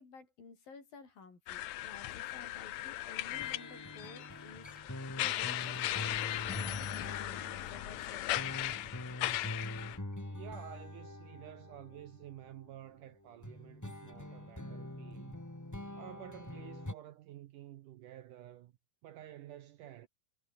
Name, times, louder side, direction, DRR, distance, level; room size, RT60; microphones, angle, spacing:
voice 1, 0.0-8.7, left 4 dB, 60° left, 7.7 m, -54 dB
sound 1, 1.5-10.0, left 14 dB, 85° left, 1.6 m, -38 dB
sound 2, 3.3-12.8 13.4-16.9, left 1 dB, 15° left, 0.6 m, -45 dB
voice 2, 10.3-15.4 15.9-18.7 19.0-20.1, right 12 dB, 70° right, 2.1 m, -51 dB
omnidirectional pair, 4.5 m